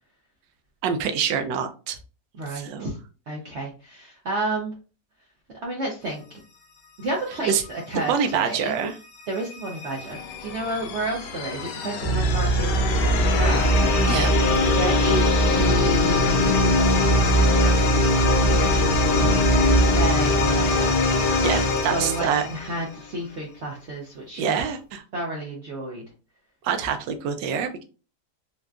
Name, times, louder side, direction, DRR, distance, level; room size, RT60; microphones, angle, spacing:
voice 1, 0.8-2.0 2.5-2.9 7.5-7.6 8.1-9.0 14.0-14.3 21.4-22.5 24.4-25.0 26.6-27.8, right 7 dB, 85° right, 7 dB, 1.3 m, -25 dB
voice 2, 2.4-2.9 3.3-4.7 5.6-6.4 7.0-8.7 9.3-13.9 14.7-17.8 18.4-19.3 19.9-20.9 21.9-24.6 25.1-26.0, right 1 dB, 70° right, -2 dB, 0.6 m, -31 dB
sound 1, 9.2-23.0, left 3 dB, 75° left, 1.2 m, -23 dB
sound 2, 12.0-20.0, right 2 dB, 55° left, 0.9 m, -22 dB
3.8 x 2.2 x 2.3 m, 0.34 s
omnidirectional pair, 1.9 m